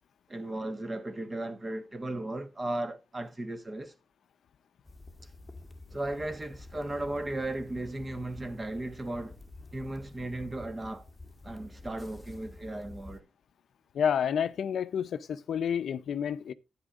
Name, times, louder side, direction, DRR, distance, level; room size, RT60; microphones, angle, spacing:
voice 1, 0.3-3.9 5.9-9.4 9.7-11.1 11.4-13.2, right 1 dB, 25° right, 1.2 m, -36 dB
sound 1, 4.9-13.2, left 2 dB, 10° left, 1.3 m, -49 dB
voice 2, 13.9-16.5, left 8 dB, 75° left, 0.6 m, -29 dB
12.0 x 10.0 x 2.5 m
cardioid pair, 110°, 0 cm